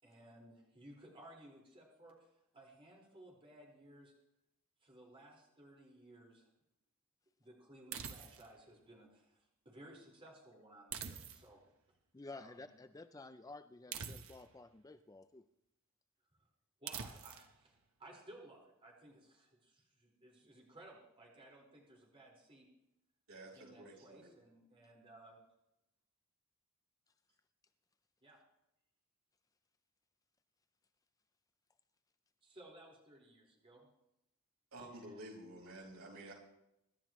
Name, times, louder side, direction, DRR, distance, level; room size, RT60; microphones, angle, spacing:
voice 1, 0.0-2.3 2.5-4.1 4.8-6.5 7.4-11.6 12.3-12.7 16.8-22.7 23.5-25.4 28.2-28.4 32.4-33.9 34.9-35.3, right 1 dB, 25° right, -3 dB, 4.8 m, -58 dB
sound 1, 7.9-8.6 10.9-11.7 13.9-14.6 16.9-17.5, right 7 dB, 65° right, 1.1 m, -45 dB
voice 2, 12.1-15.4, left 3 dB, 15° left, 10 dB, 0.4 m, -52 dB
voice 3, 23.3-24.3 34.7-36.3, right 1 dB, 90° right, -2 dB, 5.4 m, -51 dB
25.5 x 12.0 x 3.1 m, 0.85 s
head